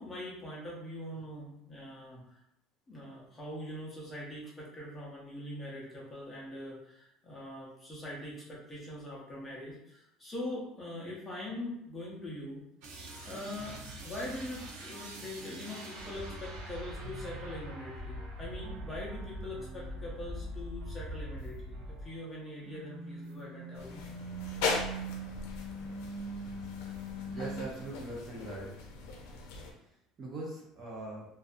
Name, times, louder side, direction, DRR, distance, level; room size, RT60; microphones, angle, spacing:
voice 1, 0.0-2.4 2.9-12.6 13.0-24.0, left 1 dB, 15° left, -5 dB, 0.7 m, -42 dB
sound 1, 12.8-22.4 22.6-27.7, right 1 dB, 80° right, 0.6 m, -42 dB
sound 2, 23.7-29.7, left 4 dB, 85° left, 0.5 m, -39 dB
voice 2, 27.2-28.7 29.2-29.4 30.2-31.3, right 2 dB, 25° right, -3 dB, 0.6 m, -41 dB
2.6 x 2.2 x 2.5 m, 0.80 s
cardioid pair, 170°, 0 cm